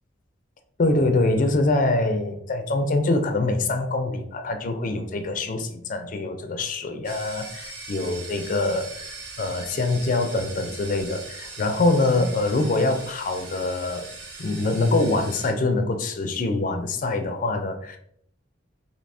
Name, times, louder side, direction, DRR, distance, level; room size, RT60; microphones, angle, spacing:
voice 1, 0.8-14.1 14.4-18.0, left 2 dB, 45° left, 7 dB, 0.4 m, -24 dB
sound 1, 7.0-15.5, right 3 dB, 60° right, 1.0 m, -40 dB
3.3 x 2.6 x 2.6 m, 0.68 s
head